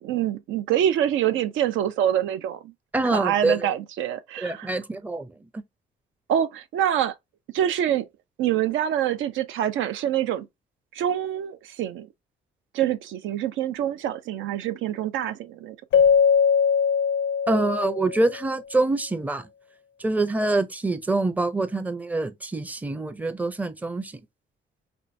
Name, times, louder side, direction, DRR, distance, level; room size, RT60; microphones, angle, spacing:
voice 1, 0.0-2.7 3.1-4.8 6.3-7.1 7.5-8.0 8.4-10.5 10.9-12.1 12.7-15.8, right 10 dB, 80° right, 0.5 m, -25 dB
voice 2, 2.9-3.7 4.4-5.6 17.5-19.5 20.0-24.2, right 2 dB, 10° right, 0.5 m, -25 dB
Keyboard (musical), 15.9-18.4, left 7 dB, 75° left, 0.5 m, -21 dB
4.4 x 2.2 x 2.5 m
cardioid pair, 90°, 20 cm